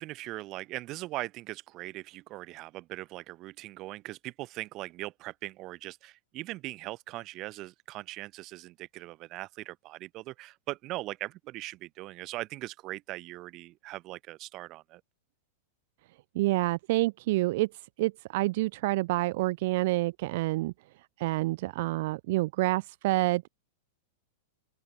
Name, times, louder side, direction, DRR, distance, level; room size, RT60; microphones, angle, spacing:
voice 1, 0.0-15.0, right 18 dB, 35° right, 4.0 m, -40 dB
voice 2, 16.3-17.7 18.0-20.7 21.2-23.5, right 19 dB, 55° right, 1.5 m, -28 dB
open air
supercardioid pair, 140°, 0 cm